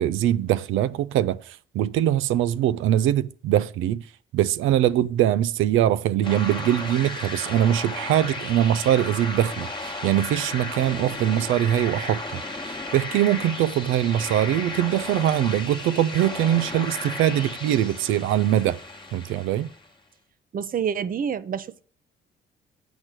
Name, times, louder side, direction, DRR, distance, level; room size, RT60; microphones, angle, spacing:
voice 1, 0.0-4.0 4.3-18.8 19.1-19.7, right 12 dB, 85° right, 0.4 m, -22 dB
sound 1, 6.2-19.9, left 2 dB, 25° left, 1.2 m, -34 dB
voice 2, 20.5-21.8, right 7 dB, 45° right, 0.6 m, -28 dB
8.2 x 4.4 x 6.1 m
cardioid pair, 90°, 20 cm